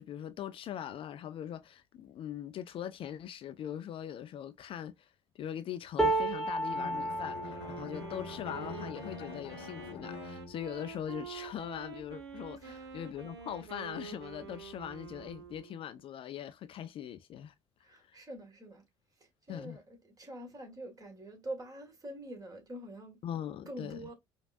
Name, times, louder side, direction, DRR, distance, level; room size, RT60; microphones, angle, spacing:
voice 1, 0.0-17.5 17.9-18.2 19.5-19.8 23.2-24.0, left 10 dB, 45° left, 0.4 m, -41 dB
sound 1, 6.0-12.1 12.7-12.9 13.2-14.0 14.9-15.0, right 2 dB, 5° left, 1.1 m, -36 dB
Bowed string instrument, 6.6-10.9, left 6 dB, 60° left, 0.9 m, -45 dB
Wind instrument woodwind instrument, 7.4-16.0, right 6 dB, 85° right, 0.6 m, -47 dB
voice 2, 17.8-18.8 19.2-23.2 23.7-24.1, right 1 dB, 25° right, 1.9 m, -45 dB
4.9 x 2.4 x 2.5 m
figure-of-eight pair, 55°, 13 cm